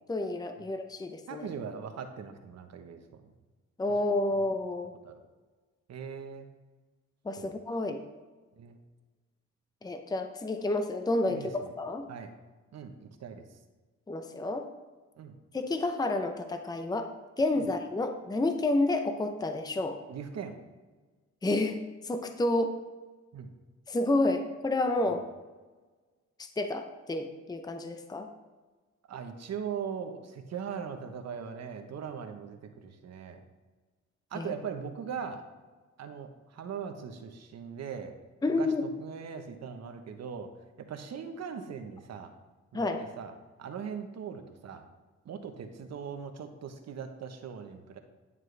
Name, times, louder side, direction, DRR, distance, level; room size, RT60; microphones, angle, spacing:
voice 1, 0.1-1.5 3.8-4.9 7.2-8.0 9.8-12.1 14.1-14.7 15.5-17.1 17.4-20.0 21.4-22.7 23.9-25.2 26.4-28.3 34.3-34.5 38.4-38.8 42.7-43.0, left 2 dB, 15° left, 6 dB, 0.7 m, -30 dB
voice 2, 1.3-3.3 5.0-5.2 5.9-6.5 7.4-7.8 8.6-8.8 11.3-11.7 12.1-12.3 12.7-13.5 15.2-15.3 17.6-17.7 20.1-20.6 23.3-23.5 25.1-25.2 29.1-33.4 34.3-35.4 36.0-38.1 38.6-38.7 39.0-40.5 40.8-42.3 42.7-42.9 43.2-43.3 43.6-44.8 45.2-48.0, right 7 dB, 60° right, 6 dB, 1.2 m, -40 dB
11.0 x 7.3 x 3.4 m, 1.3 s
cardioid pair, 90°, 30 cm